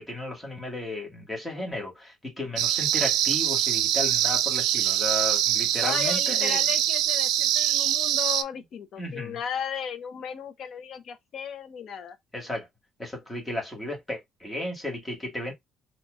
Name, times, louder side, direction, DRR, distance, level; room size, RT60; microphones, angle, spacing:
voice 1, 0.0-6.6 9.0-9.4 12.3-12.7 13.0-15.5, left 1 dB, 10° left, 1.8 m, -34 dB
sound 1, 2.6-8.4, right 12 dB, 90° right, 0.3 m, -24 dB
voice 2, 5.8-12.2, left 8 dB, 55° left, 0.8 m, -35 dB
4.1 x 2.9 x 2.4 m
cardioid pair, 125°, 0 cm